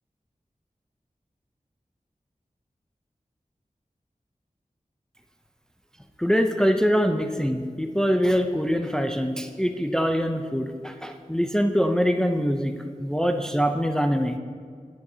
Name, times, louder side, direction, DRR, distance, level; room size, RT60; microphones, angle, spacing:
voice 1, 6.2-12.7 13.0-14.4, equal, 5° left, 6 dB, 0.5 m, -24 dB
12.0 x 9.4 x 2.8 m, 2.1 s
wide cardioid pair, 60°, 14 cm